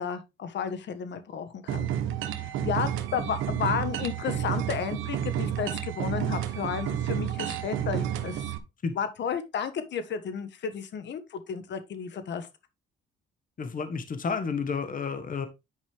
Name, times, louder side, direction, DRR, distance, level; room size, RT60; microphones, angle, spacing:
voice 1, 0.0-1.9 2.3-8.6 8.9-12.5, left 7 dB, 65° left, 1.5 m, -33 dB
sound 1, 1.7-8.6, right 10 dB, 90° right, 1.2 m, -30 dB
voice 2, 13.6-15.5, left 5 dB, 45° left, 1.4 m, -31 dB
10.0 x 5.2 x 3.5 m
cardioid pair, 90°, 20 cm